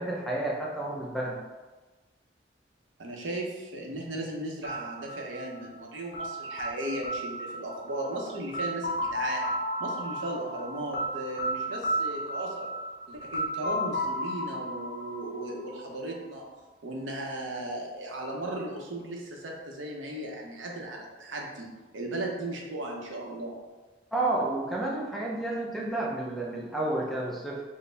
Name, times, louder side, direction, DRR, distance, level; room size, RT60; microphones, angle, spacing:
voice 1, 0.0-1.4 24.1-27.6, right 2 dB, ahead, -3 dB, 0.4 m, -30 dB
voice 2, 3.0-9.5 9.8-12.7 13.1-16.5 16.8-23.6, right 1 dB, 80° right, 0 dB, 0.7 m, -36 dB
sound 1, 4.6-16.4, equal, 55° left, 0.7 m, -34 dB
4.2 x 2.0 x 3.3 m, 1.2 s
head